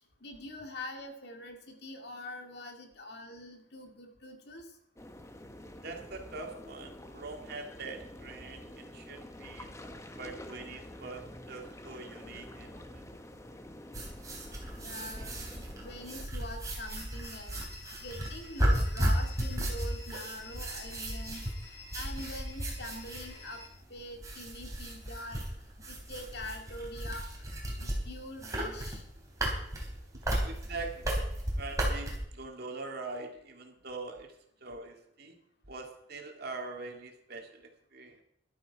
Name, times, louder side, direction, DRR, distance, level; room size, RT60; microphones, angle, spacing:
voice 1, 0.2-4.7 14.8-17.6 18.0-21.5 21.9-23.6 23.9-25.4 25.9-27.3 27.8-29.0, left 1 dB, 60° left, 3 dB, 2.3 m, -44 dB
sound 1, 5.0-16.3, left 1 dB, 15° left, 1.1 m, -48 dB
voice 2, 5.8-9.7 10.2-13.1 15.2-15.3 30.2-31.1 31.6-34.3 34.6-35.4 35.7-38.2, right 3 dB, 60° right, 3 dB, 2.3 m, -43 dB
sound 2, 13.9-32.2, right 1 dB, 20° right, 3.6 m, -34 dB
sound 3, 16.8-23.7, left 4 dB, 45° left, 7.3 m, -51 dB
13.5 x 12.0 x 4.8 m, 0.73 s
head